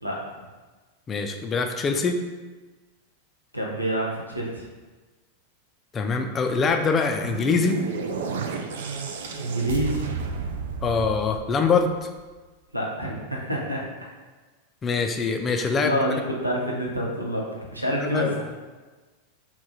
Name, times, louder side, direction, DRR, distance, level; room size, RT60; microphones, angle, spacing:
voice 1, 0.0-0.4 3.5-4.6 9.4-10.0 12.7-13.8 15.7-18.4, equal, 85° right, -2 dB, 0.7 m, -27 dB
voice 2, 1.1-2.2 5.9-7.8 10.8-12.1 14.8-15.9 18.0-18.3, left 4 dB, 25° left, 5 dB, 0.3 m, -24 dB
sound 1, 6.8-12.2, right 5 dB, 60° right, 0.3 m, -32 dB
3.5 x 2.3 x 4.1 m, 1.3 s
figure-of-eight pair, 90°, 0 cm